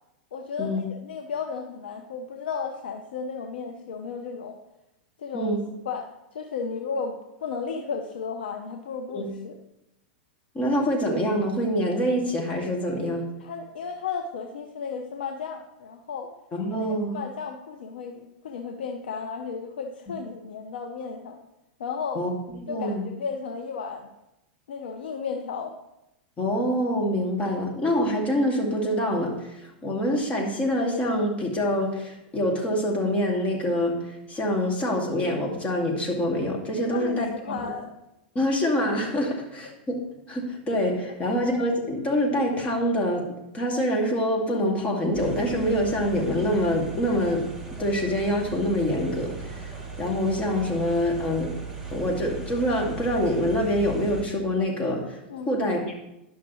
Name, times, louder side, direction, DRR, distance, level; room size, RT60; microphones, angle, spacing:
voice 1, 0.3-4.6 5.2-5.5 5.8-9.6 13.4-16.3 16.7-21.4 21.8-22.2 22.7-24.1 24.7-25.7 36.9-37.9 39.3-39.4 41.0-41.1 55.3-55.5, left 5 dB, 80° left, 3 dB, 0.8 m, -34 dB
voice 2, 10.5-13.3 16.5-17.1 22.2-22.3 22.7-23.0 26.4-37.3 38.3-47.5 47.8-49.7 50.0-51.5 51.9-55.2 55.5-55.9, equal, 25° left, 0 dB, 2.1 m, -25 dB
sound 1, 45.1-54.2, right 4 dB, 5° right, 2.6 m, -38 dB
11.0 x 5.9 x 3.1 m, 0.89 s
hypercardioid pair, 115°, 5 cm